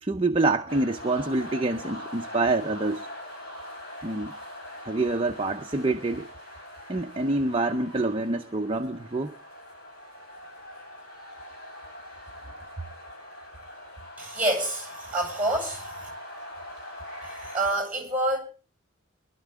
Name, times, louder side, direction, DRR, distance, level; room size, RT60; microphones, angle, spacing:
voice 1, 0.0-3.1 4.0-4.3 4.8-6.3 6.9-9.3, right 2 dB, 25° right, 0.7 m, -26 dB
sound 1, 0.7-17.7, left 1 dB, 50° left, 6.8 m, -42 dB
voice 2, 14.2-16.1 17.2-18.4, right 1 dB, 5° right, 7.4 m, -28 dB
23.0 x 12.0 x 3.5 m
head